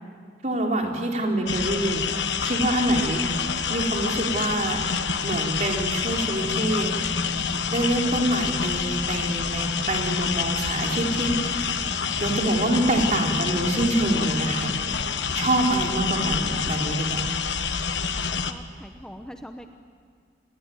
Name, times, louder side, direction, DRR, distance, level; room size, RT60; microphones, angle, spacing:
voice 1, 0.4-2.0 2.4-3.4 3.7-4.8 5.2-6.9 7.7-11.7 12.2-14.7 15.3-17.3, right 1 dB, 40° right, 0 dB, 4.0 m, -25 dB
sound 1, 1.5-18.5, left 6 dB, 80° left, 1.3 m, -27 dB
sound 2, 6.3-17.3, left 1 dB, 20° right, 1.5 m, -37 dB
voice 2, 18.1-19.7, equal, 5° left, 5 dB, 0.9 m, -43 dB
28.0 x 21.0 x 9.5 m, 2.1 s
head